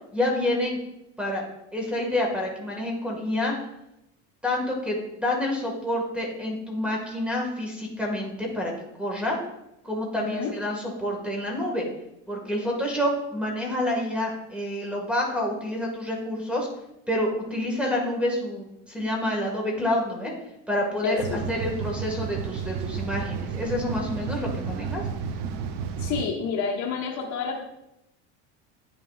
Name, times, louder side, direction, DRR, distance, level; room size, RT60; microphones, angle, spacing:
voice 1, 0.1-0.8 1.2-1.4 1.7-3.5 4.4-8.7 9.0-9.4 9.8-11.8 12.3-16.7 17.1-20.3 20.7-25.0, left 1 dB, 5° right, -1 dB, 1.7 m, -28 dB
voice 2, 10.1-10.5 21.0-21.4 26.0-27.6, left 5 dB, 55° left, 1 dB, 1.1 m, -29 dB
sound 1, 21.2-26.3, right 6 dB, 90° right, 0.8 m, -32 dB
9.7 x 5.8 x 2.4 m, 0.85 s
cardioid pair, 125°, 35 cm